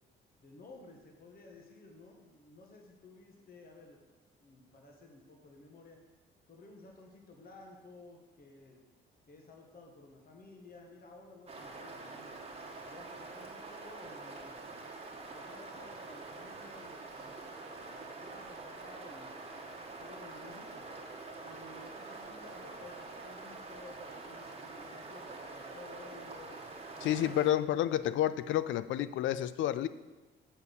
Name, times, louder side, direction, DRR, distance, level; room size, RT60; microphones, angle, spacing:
voice 1, 0.4-4.0 4.4-6.0 6.5-8.8 9.3-12.4 12.9-14.8 15.3-19.4 19.9-20.8 21.4-26.6 26.9-27.3 28.0-28.2, left 2 dB, 50° left, 1 dB, 1.5 m, -54 dB
sound 1, 11.5-27.5, right 3 dB, 30° right, 1.3 m, -46 dB
voice 2, 27.0-29.9, left 12 dB, 75° left, 15 dB, 0.4 m, -30 dB
7.0 x 4.5 x 6.9 m, 1.2 s
cardioid pair, 90°, 20 cm